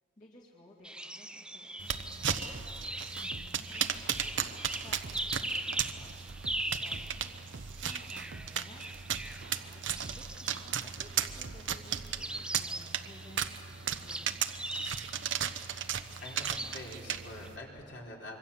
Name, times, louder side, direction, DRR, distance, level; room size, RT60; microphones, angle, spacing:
voice 1, 0.2-4.2 4.8-5.2 5.6-6.2 6.6-14.6, left 1 dB, 40° left, -4 dB, 2.4 m, -57 dB
sound 1, 0.8-11.4 12.1-17.5, right 1 dB, 5° right, 0.5 m, -41 dB
sound 2, 1.8-17.6, right 8 dB, 90° right, 1.0 m, -36 dB
sound 3, 2.5-3.5 3.8-6.7 6.9-8.5 8.8-11.6 11.9-12.5, right 3 dB, 65° right, 0.6 m, -48 dB
voice 2, 16.2-18.4, left 1 dB, 65° left, -2 dB, 4.4 m, -45 dB
26.0 x 24.5 x 7.3 m, 2.7 s
head